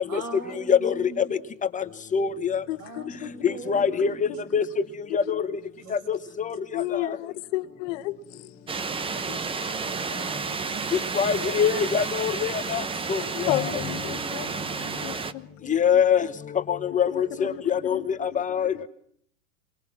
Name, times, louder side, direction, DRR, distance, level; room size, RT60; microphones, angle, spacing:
voice 1, 0.1-1.3 2.8-4.4 5.8-6.0, right 2 dB, 75° right, 6.9 m, -40 dB
voice 2, 2.1-2.6 3.4-4.1 4.5-4.6 5.1-5.2 11.2-12.3 12.7-12.8 13.1-13.2 13.5-13.6 15.7-16.3 16.9-18.7, left 7 dB, 15° left, 1.1 m, -23 dB
voice 3, 2.7-4.6 5.1-5.4 6.7-8.8 9.2-9.4 9.7-10.8 11.5-11.9 13.4-16.0 17.1-18.9, left 16 dB, 55° left, 1.6 m, -35 dB
sound 1, 8.7-15.3, right 5 dB, 10° right, 0.9 m, -31 dB
27.5 x 23.0 x 6.1 m
hypercardioid pair, 120°, 45 cm